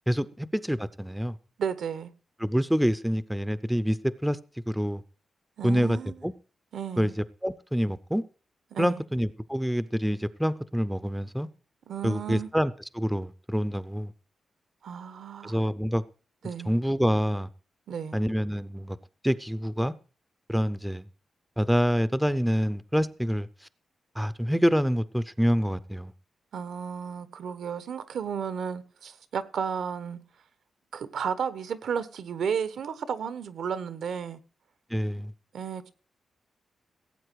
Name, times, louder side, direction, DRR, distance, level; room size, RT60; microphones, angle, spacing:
voice 1, 0.1-1.4 2.4-4.0 4.2-4.4 4.7-5.0 5.6-6.0 6.2-6.3 7.0-8.2 8.8-11.5 12.0-14.1 15.4-16.0 16.7-17.5 18.1-19.0 19.2-19.9 20.5-21.1 21.6-23.5 24.2-26.1 34.9-35.3, equal, ahead, 0.5 m, -26 dB
voice 2, 1.6-2.1 5.6-6.3 6.7-7.1 8.7-9.0 11.9-12.5 14.8-15.6 16.4-16.8 17.9-18.2 26.5-30.2 30.9-34.4 35.5-35.9, right 7 dB, 75° right, 1.2 m, -33 dB
17.0 x 8.5 x 4.7 m
wide cardioid pair, 180°, 0 cm